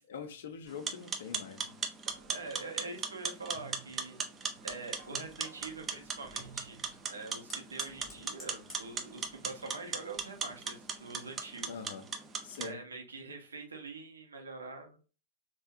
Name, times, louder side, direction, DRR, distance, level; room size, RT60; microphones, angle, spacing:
voice 1, 0.1-1.8 11.7-12.1 12.4-12.8, left 6 dB, 60° left, 0.4 m, -43 dB
sound 1, 0.7-12.7, right 5 dB, 20° right, 0.4 m, -39 dB
sound 2, 1.6-7.1, right 5 dB, 45° right, 0.9 m, -57 dB
voice 2, 2.3-4.2 4.6-6.8 7.1-11.7 12.6-15.1, right 3 dB, 75° right, 0.6 m, -44 dB
Fire, 4.5-11.8, left 2 dB, 20° left, 1.3 m, -58 dB
3.3 x 2.0 x 2.3 m
figure-of-eight pair, 90°, 0 cm